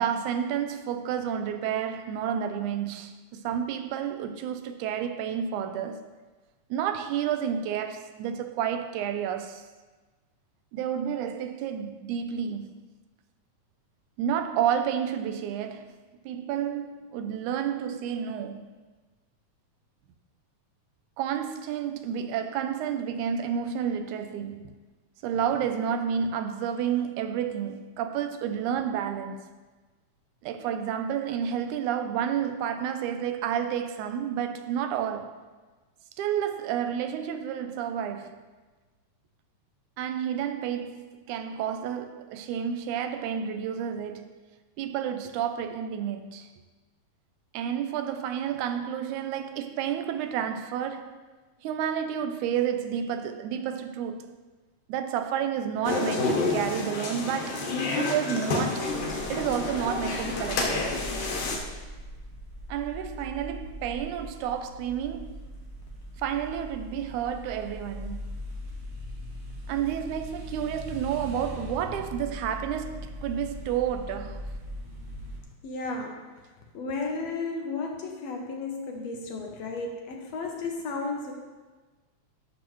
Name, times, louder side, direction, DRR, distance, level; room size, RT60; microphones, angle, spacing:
voice 1, 0.0-6.1 6.7-9.7 10.7-12.8 14.2-16.0 16.3-18.7 21.2-24.7 25.2-29.5 30.4-35.4 36.2-38.4 40.0-44.4 44.8-46.5 47.5-51.2 51.6-54.4 54.9-57.7 58.0-58.9 59.3-61.1 62.7-65.4 66.2-68.4 69.7-74.5, right 8 dB, 85° right, 2.0 m, -30 dB
sound 1, 55.8-61.6, left 3 dB, 90° left, 2.7 m, -29 dB
sound 2, 58.8-75.4, equal, 45° right, 1.3 m, -40 dB
voice 2, 75.6-76.3 76.7-81.3, left 3 dB, 70° left, 1.8 m, -33 dB
12.0 x 6.2 x 3.0 m
omnidirectional pair, 3.4 m